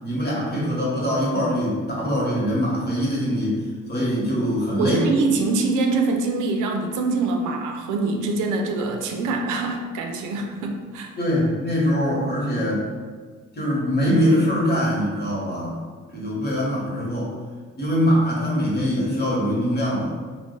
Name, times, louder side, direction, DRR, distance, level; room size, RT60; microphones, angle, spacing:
voice 1, 0.0-3.6 3.9-5.1 11.2-12.9 13.5-15.8 16.1-17.3 17.8-20.1, equal, 30° left, -6 dB, 1.1 m, -23 dB
voice 2, 4.8-11.1, right 3 dB, 85° right, 3 dB, 0.5 m, -24 dB
2.3 x 2.1 x 3.8 m, 1.5 s
cardioid pair, 90°, 30 cm